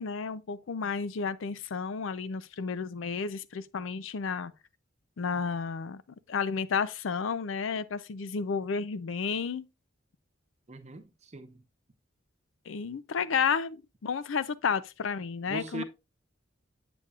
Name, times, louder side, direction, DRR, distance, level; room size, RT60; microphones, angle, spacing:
voice 1, 0.0-4.5 5.2-6.0 6.3-9.7 12.7-15.8, left 5 dB, 80° left, 0.5 m, -32 dB
voice 2, 10.7-11.6 15.5-15.8, right 2 dB, 35° right, 0.9 m, -40 dB
8.2 x 6.9 x 2.4 m
head